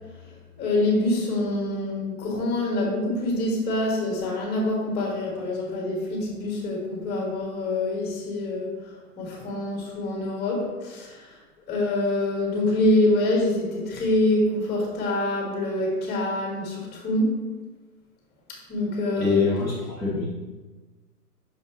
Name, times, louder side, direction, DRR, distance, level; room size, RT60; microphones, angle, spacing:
voice 1, 0.6-11.4 11.7-17.4 18.7-19.4, left 1 dB, 20° left, -2 dB, 1.8 m, -25 dB
voice 2, 19.2-20.3, left 4 dB, ahead, -10 dB, 0.7 m, -24 dB
6.1 x 5.2 x 3.1 m, 1.2 s
figure-of-eight pair, 120°, 48 cm